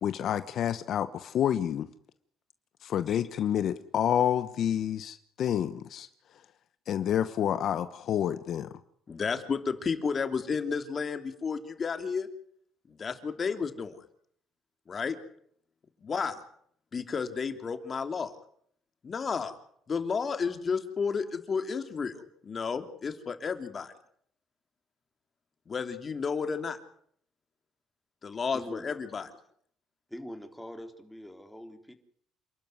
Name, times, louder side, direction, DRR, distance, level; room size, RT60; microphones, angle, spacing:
voice 1, 0.0-1.9 2.8-6.1 6.9-8.7, left 10 dB, 65° left, 1.1 m, -28 dB
voice 2, 9.1-12.3 12.9-14.0 14.9-15.2 16.0-16.4 16.9-18.3 19.0-19.5 19.9-23.9 25.7-26.8 28.2-29.3, left 5 dB, 40° left, 3.0 m, -32 dB
voice 3, 28.5-28.9 30.1-31.9, equal, 5° left, 3.7 m, -43 dB
28.0 x 12.5 x 9.6 m
supercardioid pair, 80°, 0 cm